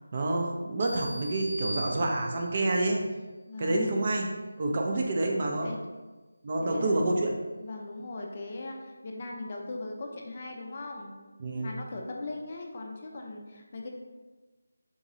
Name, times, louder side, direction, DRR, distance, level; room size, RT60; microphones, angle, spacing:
voice 1, 0.1-3.0 3.6-4.3 4.6-5.7 6.4-7.3 11.4-11.7, right 2 dB, 35° right, 1 dB, 0.4 m, -28 dB
sound 1, 0.8-2.6, right 1 dB, 70° right, 0.7 m, -39 dB
voice 2, 3.5-4.1 5.6-5.8 6.6-7.0 7.6-11.1 11.6-13.9, left 2 dB, 35° left, 0 dB, 0.4 m, -39 dB
3.7 x 2.9 x 2.6 m, 1.2 s
figure-of-eight pair, 170°, 0 cm